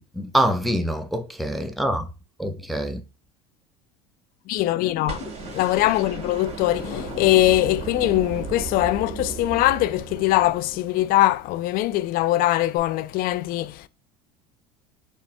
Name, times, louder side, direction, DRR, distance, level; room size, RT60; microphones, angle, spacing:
voice 1, 0.0-2.1 2.4-3.0, right 1 dB, ahead, 0.6 m, -25 dB
voice 2, 4.5-13.9, left 15 dB, 50° left, 0.4 m, -22 dB
sound 1, 5.1-11.3 12.8-12.9, right 5 dB, 35° right, 2.2 m, -35 dB
4.2 x 3.2 x 3.3 m
hypercardioid pair, 80°, 19 cm